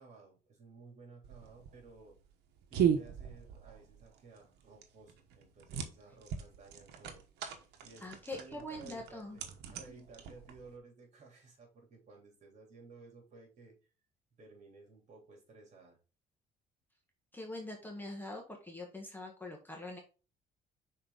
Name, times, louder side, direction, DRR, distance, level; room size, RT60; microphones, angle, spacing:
voice 1, 0.0-2.2 2.7-7.2 7.8-8.1 8.3-13.7 14.4-16.0, right 4 dB, 45° right, 0 dB, 3.5 m, -56 dB
sound 1, 1.2-10.8, right 8 dB, 80° right, 1.1 m, -37 dB
voice 2, 8.0-9.4 9.9-10.1 17.3-20.0, left 1 dB, 10° left, 1 dB, 1.5 m, -44 dB
5.9 x 4.5 x 4.0 m, 0.34 s
cardioid pair, 110°, 17 cm